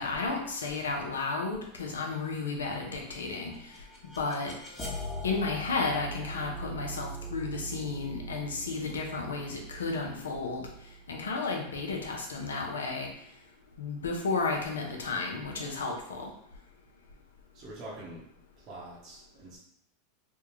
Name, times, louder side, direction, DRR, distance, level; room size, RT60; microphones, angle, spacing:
voice 1, 0.0-3.8 4.2-4.5 5.2-10.7 11.1-13.1 13.8-16.3, left 4 dB, 90° left, 1 dB, 0.6 m, -33 dB
sound 1, 3.5-12.3, right 1 dB, 30° left, 1.0 m, -42 dB
voice 2, 17.5-18.3 18.6-19.6, right 1 dB, 45° right, -6 dB, 1.0 m, -45 dB
3.5 x 2.3 x 3.1 m, 0.75 s
hypercardioid pair, 100°, 0 cm